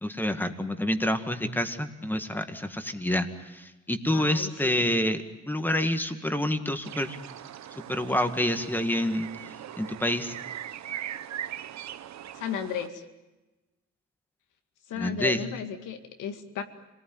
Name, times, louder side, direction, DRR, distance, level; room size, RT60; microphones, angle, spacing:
voice 1, 0.0-7.2 7.9-9.3 9.8-10.3 14.9-15.4, left 1 dB, 5° left, 7 dB, 2.0 m, -28 dB
voice 2, 4.1-4.8 12.3-13.0 14.9-16.6, left 8 dB, 90° left, 6 dB, 2.2 m, -34 dB
sound 1, 6.8-12.9, right 11 dB, 65° right, 0.9 m, -40 dB
26.0 x 19.0 x 9.4 m, 1.1 s
cardioid pair, 90°, 30 cm